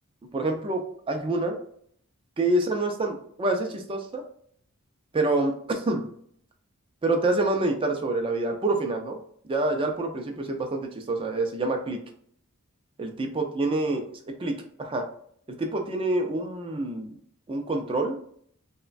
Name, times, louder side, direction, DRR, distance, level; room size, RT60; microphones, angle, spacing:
voice 1, 0.3-1.6 2.4-4.2 5.1-6.1 7.0-12.0 13.0-15.0 15.5-17.1 17.5-18.2, right 2 dB, 25° right, 3 dB, 0.3 m, -27 dB
3.0 x 2.1 x 2.4 m, 0.62 s
head